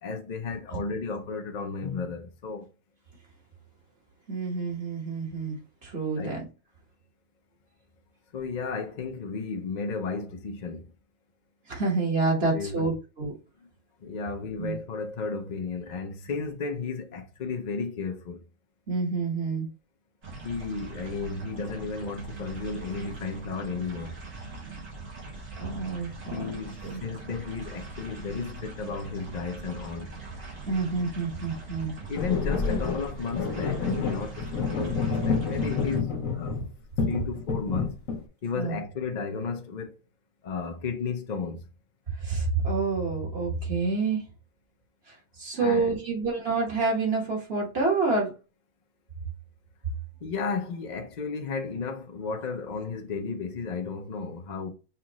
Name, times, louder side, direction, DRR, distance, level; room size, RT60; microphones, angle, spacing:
voice 1, 0.0-2.7 6.2-6.3 8.3-10.8 12.5-12.9 14.0-18.4 20.4-24.2 26.3-30.1 32.1-36.6 37.1-38.0 38.4-40.0 40.4-41.6 45.6-45.9 50.2-54.7, left 4 dB, 45° left, 0.6 m, -33 dB
voice 2, 4.3-5.6 5.8-6.4 11.7-13.3 14.6-14.8 18.9-19.7 25.6-26.5 26.8-27.0 30.6-31.9 38.5-38.8 42.2-44.2 45.1-48.3, right 3 dB, 50° right, 1.7 m, -28 dB
sound 1, 20.2-36.0, right 3 dB, 80° right, 2.1 m, -42 dB
sound 2, 32.1-36.7 37.0-38.2, left 4 dB, 85° left, 1.3 m, -28 dB
5.7 x 2.5 x 3.0 m
omnidirectional pair, 1.3 m